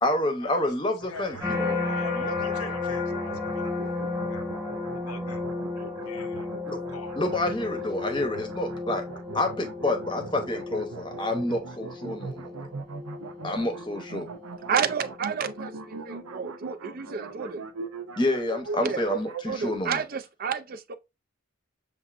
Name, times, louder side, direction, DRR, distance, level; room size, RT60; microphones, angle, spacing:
voice 1, 0.0-2.3 2.6-2.7 6.7-6.8 7.2-9.0 9.3-12.5 13.4-14.3 18.2-20.0, left 1 dB, 20° left, 0.8 m, -28 dB
sound 1, 1.0-19.5, right 4 dB, 85° right, 0.6 m, -40 dB
voice 2, 1.1-4.5 4.9-5.4 6.1-6.5 6.9-7.1, left 6 dB, 85° left, 0.5 m, -44 dB
sound 2, 1.4-16.6 17.1-17.5, left 3 dB, 10° right, 1.2 m, -34 dB
voice 3, 14.7-17.7 18.8-19.0 19.4-21.0, right 6 dB, 40° right, 0.4 m, -30 dB
6.9 x 2.6 x 2.5 m
head